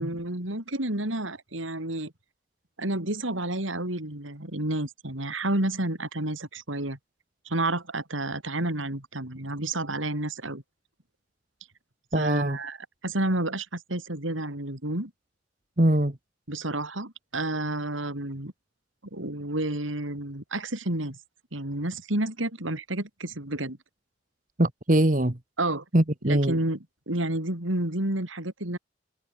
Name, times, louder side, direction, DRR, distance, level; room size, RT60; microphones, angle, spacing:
voice 1, 0.0-2.1 2.8-7.0 7.4-10.6 12.1-12.8 13.0-15.1 16.5-18.5 19.1-21.2 21.5-23.8 25.6-25.8 26.2-28.8, right 1 dB, 90° right, 4.6 m, -30 dB
voice 2, 12.1-12.6 15.8-16.1 24.6-25.4 25.9-26.5, right 1 dB, 40° right, 1.7 m, -22 dB
head